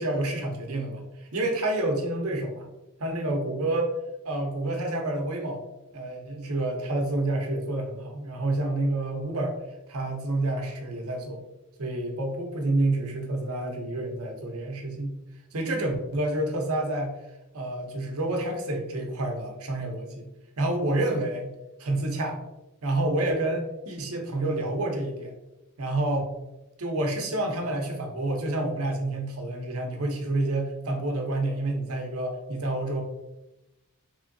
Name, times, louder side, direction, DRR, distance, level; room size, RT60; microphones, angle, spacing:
voice 1, 0.0-2.7 3.0-3.9 4.2-5.6 5.9-9.6 9.9-11.4 11.8-15.1 15.5-17.1 17.5-20.3 20.6-21.5 21.8-22.4 22.8-25.3 25.8-26.3 26.8-33.0, right 2 dB, 75° right, 3 dB, 0.8 m, -28 dB
3.6 x 3.1 x 2.6 m, 0.95 s
head